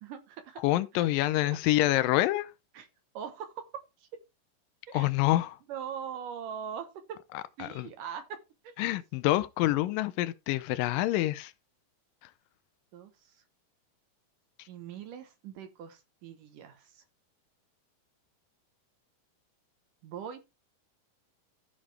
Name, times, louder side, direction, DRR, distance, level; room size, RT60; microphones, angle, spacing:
voice 1, 0.0-0.6 1.5-1.6 2.7-2.9 3.1-4.1 4.9-5.1 5.7-7.2 7.6-8.4 8.6-8.8 12.9-13.4 14.7-17.0 20.0-20.5, right 8 dB, 75° right, 2.7 m, -41 dB
voice 2, 0.6-2.5 4.9-5.6 7.3-7.9 8.8-11.5, left 16 dB, 85° left, 2.4 m, -27 dB
14.5 x 5.0 x 3.3 m
omnidirectional pair, 3.9 m